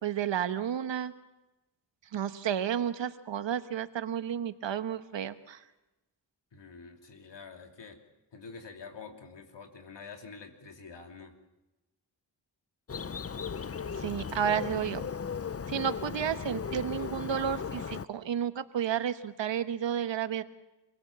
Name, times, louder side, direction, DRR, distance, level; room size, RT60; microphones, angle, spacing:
voice 1, 0.0-1.1 2.1-5.6 14.0-15.0 15.7-20.4, right 9 dB, 75° right, 11 dB, 1.2 m, -31 dB
voice 2, 6.5-8.0 8.3-11.3, left 5 dB, 65° left, 4 dB, 3.1 m, -47 dB
Bird, 12.9-18.1, left 6 dB, 30° left, 0.7 m, -37 dB
26.5 x 17.5 x 7.4 m, 1.0 s
cardioid pair, 45°, 45 cm